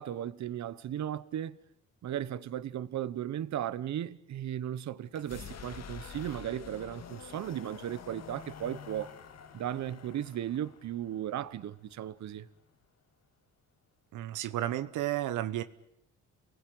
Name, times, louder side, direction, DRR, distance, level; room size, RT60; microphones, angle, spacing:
voice 1, 0.0-1.6 2.0-9.1 9.5-12.5, right 11 dB, 65° right, 1.2 m, -36 dB
sound 1, 5.1-12.8, left 7 dB, 60° left, 2.1 m, -48 dB
voice 2, 14.1-15.6, right 13 dB, 85° right, 1.1 m, -32 dB
29.0 x 19.5 x 9.5 m
cardioid pair, 90°, 30 cm